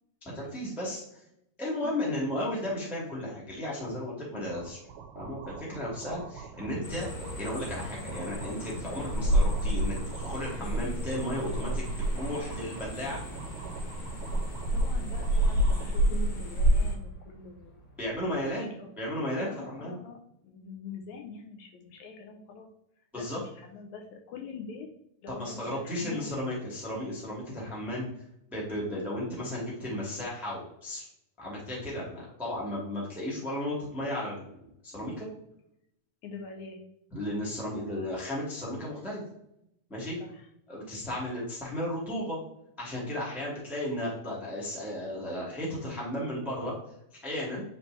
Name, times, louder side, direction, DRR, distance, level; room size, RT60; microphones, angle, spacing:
voice 1, 0.3-1.2 1.6-4.8 5.1-11.8 12.1-13.2 18.0-18.7 19.0-20.0 23.1-23.4 25.3-28.0 28.5-31.1 31.4-35.3 37.1-39.2 39.9-40.2 40.7-42.4 42.8-46.7 47.2-47.6, left 1 dB, ahead, -5 dB, 0.7 m, -34 dB
voice 2, 1.8-2.2 6.6-6.7 14.7-17.8 18.4-18.9 19.4-22.7 23.1-24.9 25.2-26.3 36.2-36.8 40.2-40.5 43.4-43.5, left 4 dB, 75° left, 2 dB, 1.9 m, -44 dB
sound 1, 4.4-16.0, right 6 dB, 75° right, 2.2 m, -45 dB
sound 2, 6.5-18.5, right 1 dB, 15° left, 1.5 m, -47 dB
sound 3, 6.8-16.9, right 1 dB, 55° left, 1.5 m, -29 dB
9.4 x 3.3 x 3.2 m, 0.76 s
omnidirectional pair, 3.8 m